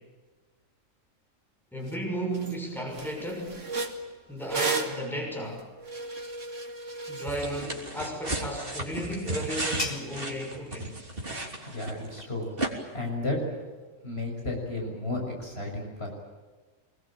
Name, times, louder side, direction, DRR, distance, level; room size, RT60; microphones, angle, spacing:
voice 1, 1.7-3.6 4.3-5.6 7.1-11.0, right 1 dB, ahead, 1 dB, 6.3 m, -34 dB
sound 1, 1.9-2.0 2.3-2.6 2.9-7.7, right 3 dB, 70° right, 2.7 m, -34 dB
sound 2, 7.3-12.2 12.6-12.7, right 1 dB, 45° right, 3.7 m, -34 dB
sound 3, 8.5-13.9, left 2 dB, 30° left, 2.5 m, -43 dB
voice 2, 11.7-12.5 12.9-13.4 14.0-16.1, left 2 dB, 50° left, 0 dB, 6.7 m, -33 dB
25.5 x 21.0 x 9.0 m, 1.3 s
omnidirectional pair, 1.3 m